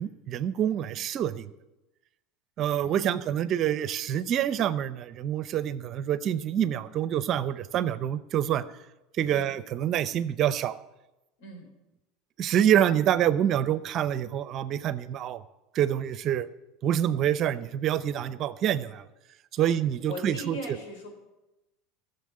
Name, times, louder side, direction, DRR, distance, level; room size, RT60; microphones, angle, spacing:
voice 1, 0.0-1.5 2.6-8.6 9.2-10.8 12.4-15.4 15.7-16.5 16.8-19.0 19.5-20.8, right 10 dB, 45° right, 15 dB, 0.6 m, -26 dB
voice 2, 2.8-3.2 9.2-9.5 11.4-11.7 19.6-19.7 20.1-21.1, equal, 75° left, 2 dB, 4.2 m, -40 dB
13.0 x 6.9 x 8.7 m, 0.99 s
supercardioid pair, 115°, 0 cm